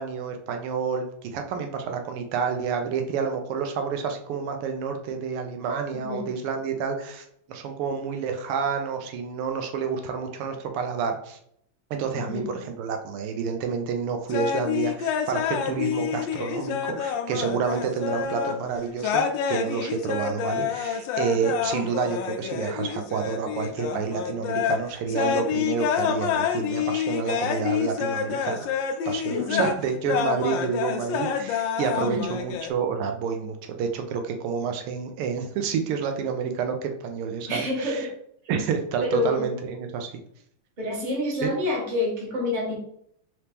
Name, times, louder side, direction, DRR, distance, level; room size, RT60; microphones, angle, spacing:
voice 1, 0.0-11.4 11.9-28.7 29.0-38.1 38.5-40.1 41.4-41.5, right 6 dB, 85° right, 5 dB, 1.6 m, -29 dB
voice 2, 5.9-6.4 12.1-12.6 29.3-29.8 32.0-32.4 37.5-38.1 39.0-39.4 40.8-42.8, left 2 dB, 25° right, -3 dB, 1.2 m, -28 dB
sound 1, 14.3-18.6 19.0-24.8 25.1-32.7, left 8 dB, 75° left, 1.1 m, -28 dB
4.4 x 3.0 x 3.3 m, 0.68 s
omnidirectional pair, 2.4 m